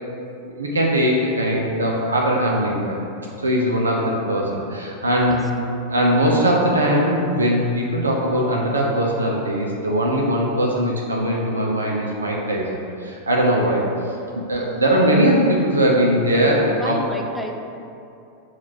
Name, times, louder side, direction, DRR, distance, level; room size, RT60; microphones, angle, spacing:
voice 1, 0.5-3.0 3.4-5.4 5.8-13.9 14.3-17.0, equal, 75° right, -2 dB, 0.5 m, -20 dB
voice 2, 16.4-17.5, equal, ahead, 1 dB, 0.4 m, -32 dB
7.0 x 2.4 x 2.9 m, 2.6 s
figure-of-eight pair, 90°, 0 cm